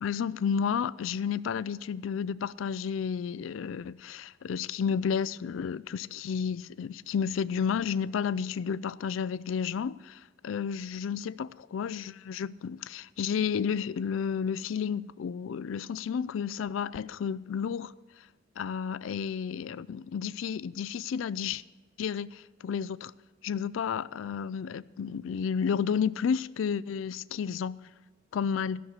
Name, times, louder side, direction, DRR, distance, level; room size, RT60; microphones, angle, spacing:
voice 1, 0.0-17.9 18.6-21.6 22.0-23.1 23.4-27.8 28.3-28.8, left 7 dB, 80° left, 0.3 m, -31 dB
13.5 x 6.4 x 8.1 m
head